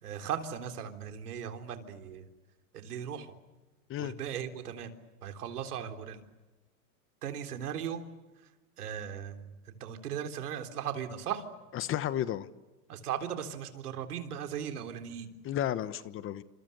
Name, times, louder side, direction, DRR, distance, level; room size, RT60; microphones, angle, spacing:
voice 1, 0.0-2.3 2.7-3.3 4.0-4.9 5.2-6.2 7.2-8.0 8.8-11.4 12.9-15.3, right 9 dB, 85° right, 3.7 m, -37 dB
voice 2, 11.7-12.5 15.4-16.4, left 11 dB, 30° left, 1.1 m, -32 dB
29.0 x 26.5 x 6.9 m
supercardioid pair, 130°, 45 cm